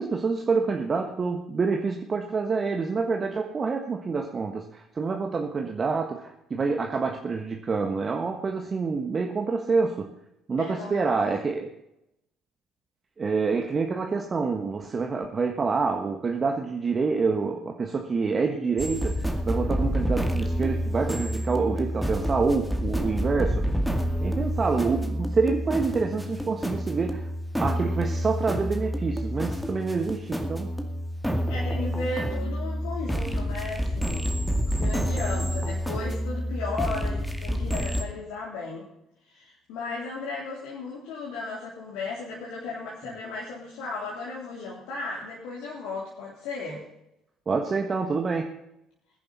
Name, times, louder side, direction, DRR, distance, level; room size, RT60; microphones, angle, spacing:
voice 1, 0.0-10.1 10.5-11.7 13.2-23.8 24.2-27.3 27.6-30.8 47.5-48.5, right 4 dB, 35° right, 3 dB, 1.4 m, -27 dB
voice 2, 10.6-11.4 31.5-34.4 34.7-38.9 39.2-46.8, left 3 dB, 65° left, -5 dB, 3.5 m, -35 dB
sound 1, 18.8-38.0, equal, ahead, 2.2 m, -28 dB
20.5 x 10.5 x 4.2 m, 0.84 s
figure-of-eight pair, 55°, 0 cm